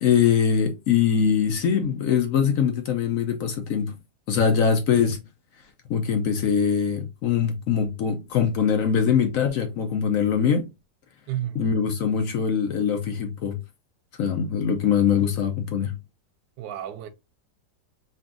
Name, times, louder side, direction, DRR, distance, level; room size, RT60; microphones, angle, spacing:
voice 1, 0.0-3.9 4.3-5.2 5.9-10.7 11.5-13.6 14.2-15.9, left 7 dB, 65° left, 0.8 m, -22 dB
voice 2, 11.3-11.6 16.6-17.1, right 12 dB, 90° right, 1.3 m, -31 dB
5.3 x 2.6 x 2.5 m
omnidirectional pair, 1.9 m